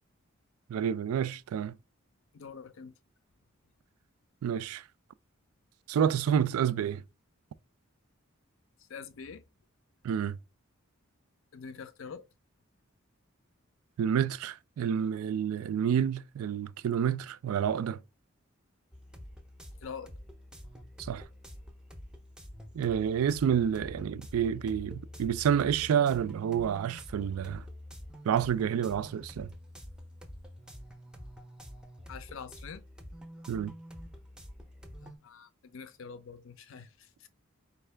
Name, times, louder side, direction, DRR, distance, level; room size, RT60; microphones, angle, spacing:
voice 1, 0.7-1.8 4.4-4.8 5.9-7.0 10.0-10.4 14.0-18.0 21.0-21.3 22.7-27.6 28.3-29.5 33.5-33.7, right 8 dB, 90° right, 0.3 m, -29 dB
voice 2, 2.3-2.9 8.8-9.4 11.5-12.2 19.8-20.1 32.1-32.8 35.0-37.3, left 6 dB, 65° left, 0.4 m, -45 dB
sound 1, 18.9-35.2, equal, 5° right, 0.5 m, -47 dB
4.4 x 2.3 x 3.3 m
head